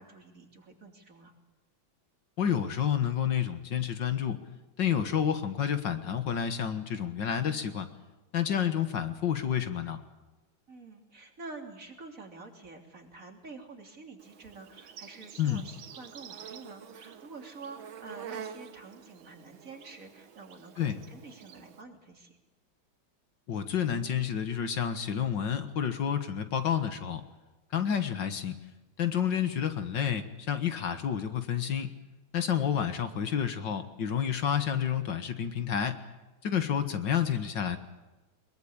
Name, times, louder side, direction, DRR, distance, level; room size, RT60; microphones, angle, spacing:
voice 1, 0.0-1.3 10.7-22.4, right 3 dB, 40° right, 3 dB, 3.6 m, -48 dB
voice 2, 2.4-4.4 4.8-7.9 8.3-10.0 15.4-15.6 20.8-21.0 23.5-27.2 27.7-28.6 29.0-31.9 32.3-36.0 36.4-37.8, left 8 dB, 65° left, 9 dB, 2.1 m, -29 dB
Insect, 14.2-21.8, right 8 dB, 80° right, 2.0 m, -47 dB
22.5 x 22.0 x 8.6 m, 1.1 s
omnidirectional pair, 2.2 m